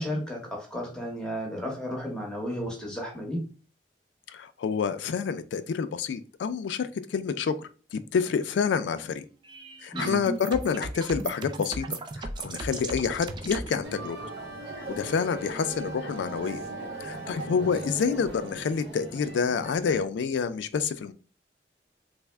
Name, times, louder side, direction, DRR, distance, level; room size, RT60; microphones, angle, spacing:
voice 1, 0.0-3.5 9.9-10.2, equal, 5° left, -1 dB, 0.9 m, -33 dB
voice 2, 4.3-9.2 9.8-14.2 14.9-16.6 17.0-21.1, left 6 dB, 90° left, 12 dB, 0.3 m, -28 dB
sound 1, 9.4-13.8, right 3 dB, 25° right, 0.3 m, -36 dB
sound 2, 13.8-20.1, right 1 dB, 70° right, 0.8 m, -39 dB
3.4 x 2.0 x 3.3 m, 0.36 s
head